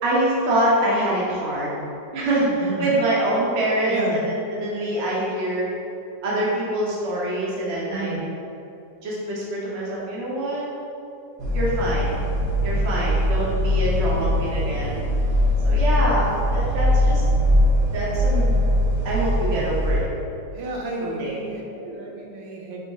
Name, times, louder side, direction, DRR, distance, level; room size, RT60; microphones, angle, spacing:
voice 1, 0.0-1.8 2.1-5.6 6.2-8.1 9.0-10.7 11.5-12.2 12.6-15.0 15.6-17.2 17.9-18.5 19.0-20.0 21.0-21.3, right 1 dB, 45° right, -6 dB, 1.0 m, -25 dB
voice 2, 2.6-2.9 3.9-4.2 7.9-8.2 20.5-22.8, right 3 dB, 85° right, -1 dB, 1.3 m, -31 dB
sound 1, 11.4-20.0, left 1 dB, 65° right, 1.3 m, -21 dB
5.3 x 2.0 x 4.6 m, 2.8 s
omnidirectional pair, 2.0 m